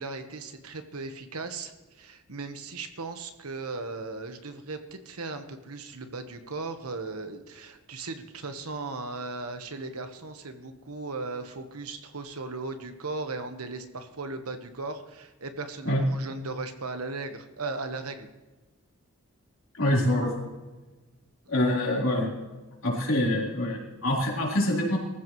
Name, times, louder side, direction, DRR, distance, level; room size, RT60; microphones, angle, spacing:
voice 1, 0.0-4.8 5.0-18.3 21.4-21.5, right 3 dB, 90° right, 7 dB, 1.3 m, -37 dB
voice 2, 19.7-20.5 21.5-22.3 22.8-25.0, left 1 dB, 65° left, -3 dB, 4.0 m, -25 dB
23.5 x 14.5 x 3.2 m, 1.2 s
head